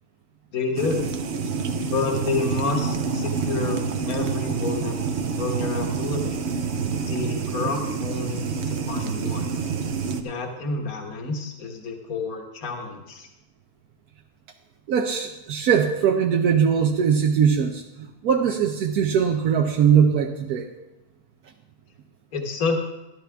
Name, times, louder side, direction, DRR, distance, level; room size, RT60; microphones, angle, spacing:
voice 1, 0.5-1.1 1.8-4.9 5.2-6.4 7.1-9.5 10.2-13.3 22.3-22.8, left 4 dB, 65° left, 2 dB, 1.7 m, -29 dB
sound 1, 0.8-10.2, right 5 dB, 55° right, 0.9 m, -27 dB
voice 2, 14.9-20.7, right 7 dB, 75° right, 3 dB, 1.2 m, -21 dB
12.5 x 12.0 x 3.5 m, 0.97 s
omnidirectional pair, 1.7 m